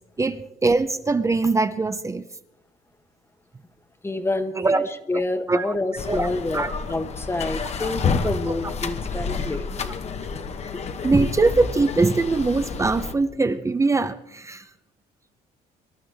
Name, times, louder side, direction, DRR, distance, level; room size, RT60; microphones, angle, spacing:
voice 1, 0.2-2.2 4.5-4.9 5.5-5.7 6.1-6.3 6.5-6.7 8.5-8.6 11.0-14.6, right 3 dB, 20° right, 11 dB, 0.6 m, -22 dB
voice 2, 4.0-10.0, left 2 dB, 15° left, 9 dB, 1.0 m, -28 dB
sound 1, 6.0-13.1, left 5 dB, 40° left, 1.0 m, -29 dB
24.5 x 12.0 x 3.4 m, 0.92 s
cardioid pair, 110°, 17 cm